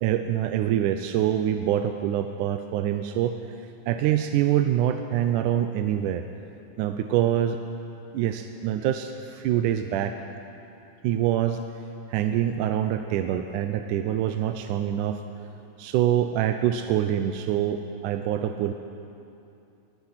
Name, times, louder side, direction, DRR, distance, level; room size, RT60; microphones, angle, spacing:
voice 1, 0.0-3.4 3.9-6.3 6.8-7.6 8.1-10.2 11.0-11.6 12.1-15.2 15.8-18.7, right 11 dB, 80° right, 7 dB, 2.0 m, -25 dB
23.5 x 19.5 x 5.8 m, 2.7 s
omnidirectional pair, 4.1 m